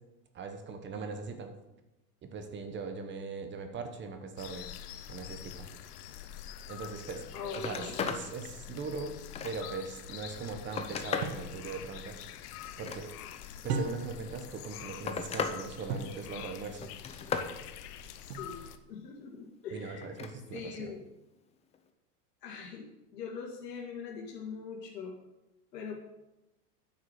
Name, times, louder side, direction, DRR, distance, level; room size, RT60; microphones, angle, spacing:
voice 1, 0.3-1.5 2.2-4.7 5.1-5.7 6.7-9.1 9.4-12.2 12.8-13.1 13.6-16.9 19.7-20.9, right 4 dB, 25° right, 7 dB, 1.1 m, -40 dB
sound 1, 4.4-18.8, left 10 dB, 70° left, 1.0 m, -46 dB
Telephone, 7.0-7.1 7.4-8.3 8.7-9.8 10.4-11.4 12.6-13.5 14.4-15.6 15.9-16.4 16.8-17.5 20.0-20.3 21.7-21.9, left 6 dB, 15° left, 0.5 m, -37 dB
voice 2, 7.3-8.1 18.2-18.6 18.9-20.1 20.5-21.0 22.4-22.9 23.1-25.1 25.7-26.0, left 5 dB, 90° left, -2 dB, 2.2 m, -42 dB
sound 2, 11.2-11.5 13.7-14.3 15.9-16.2 18.3-18.8, right 5 dB, 75° right, 1.3 m, -36 dB
9.6 x 6.1 x 6.5 m, 0.96 s
supercardioid pair, 135°, 47 cm